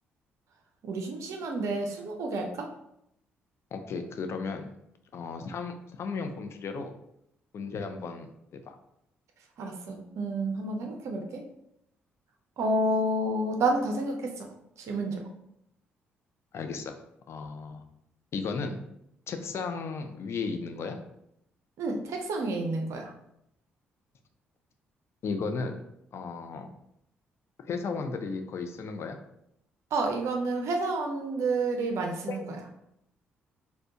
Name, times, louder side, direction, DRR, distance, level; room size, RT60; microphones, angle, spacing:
voice 1, 0.8-2.7 9.6-11.4 12.6-14.5 14.8-15.3 21.8-23.1 29.9-32.4, right 2 dB, 55° right, 3 dB, 0.5 m, -30 dB
voice 2, 3.7-4.7 5.1-6.9 7.5-8.8 16.5-16.9 17.3-17.8 18.3-18.8 19.3-21.0 25.2-25.8 26.1-26.7 27.7-29.2 32.3-32.4, left 4 dB, 50° left, 6 dB, 0.5 m, -35 dB
4.1 x 2.2 x 2.8 m, 0.77 s
figure-of-eight pair, 40°, 6 cm